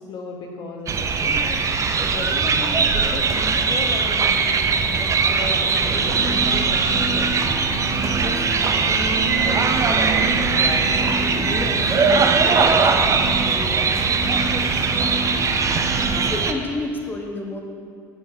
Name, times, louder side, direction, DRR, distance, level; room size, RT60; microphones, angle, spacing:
voice 1, 0.0-1.6 2.0-4.9 5.2-7.3 8.2-10.9 11.3-12.7 13.0-14.4, left 3 dB, 45° left, 0 dB, 1.0 m, -35 dB
sound 1, 0.9-16.5, right 5 dB, 30° right, 0.6 m, -20 dB
sound 2, 5.8-16.3, right 2 dB, 5° right, 1.6 m, -29 dB
voice 2, 15.4-15.8 16.1-17.6, left 2 dB, 20° left, 1 dB, 1.1 m, -30 dB
9.9 x 7.7 x 2.8 m, 2.2 s
figure-of-eight pair, 60°, 11 cm